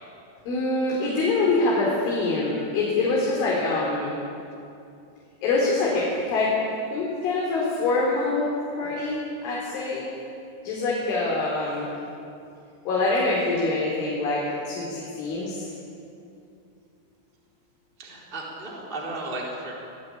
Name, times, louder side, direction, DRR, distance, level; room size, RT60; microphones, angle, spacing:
voice 1, 0.5-4.2 5.4-6.5 6.9-10.1 10.6-11.9 12.9-15.7, left 3 dB, 90° left, -5 dB, 6.6 m, -25 dB
voice 2, 18.0-19.7, right 2 dB, 10° right, -3 dB, 3.6 m, -34 dB
28.5 x 17.5 x 8.9 m, 2.6 s
omnidirectional pair, 5.3 m